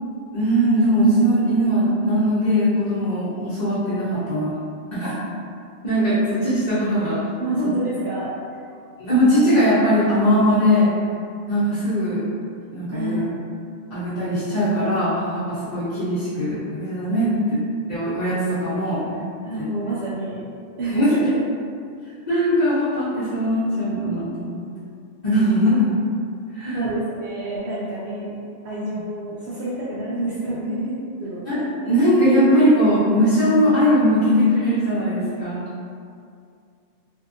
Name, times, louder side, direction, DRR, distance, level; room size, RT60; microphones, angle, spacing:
voice 1, 0.3-4.5 4.9-5.1 5.8-7.2 9.0-10.9 11.5-12.2 12.7-13.2 13.9-17.3 17.9-19.0 19.6-19.7 20.9-21.1 22.3-24.6 25.2-25.9 26.5-26.8 31.5-31.6 31.8-35.6, equal, 45° left, -13 dB, 0.8 m, -20 dB
voice 2, 7.4-8.3 12.9-13.2 17.2-17.5 19.4-20.4 20.8-21.4 26.7-28.3 28.6-30.9 31.2-31.5, right 1 dB, 70° right, -9 dB, 0.8 m, -27 dB
2.7 x 2.5 x 2.5 m, 2.3 s
omnidirectional pair, 1.2 m